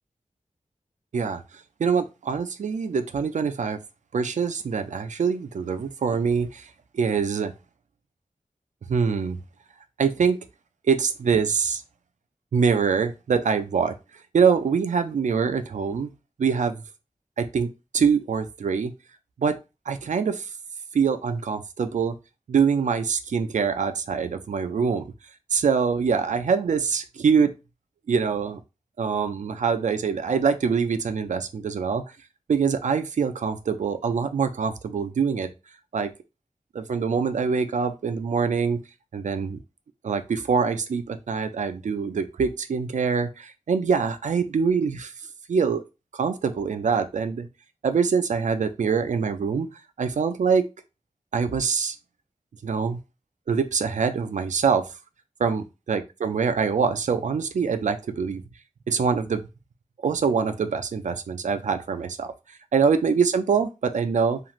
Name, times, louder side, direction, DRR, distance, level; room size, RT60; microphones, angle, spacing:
voice 1, 1.8-3.8 4.1-7.5 8.9-9.4 10.0-10.4 10.8-11.8 12.5-13.9 14.3-16.1 16.4-16.8 17.4-18.9 19.4-19.5 19.9-20.5 20.9-22.1 22.5-25.0 25.5-27.5 28.1-28.6 29.0-32.0 32.5-35.5 35.9-36.1 36.7-38.8 39.1-39.6 40.0-45.1 45.5-45.8 46.1-47.5 47.8-49.7 50.0-50.6 51.3-52.0 52.6-53.0 53.5-54.9 55.4-58.4 58.9-59.4 60.0-64.4, right 6 dB, 75° right, 9 dB, 0.4 m, -24 dB
3.0 x 2.4 x 2.4 m, 0.27 s
wide cardioid pair, 70°, 13 cm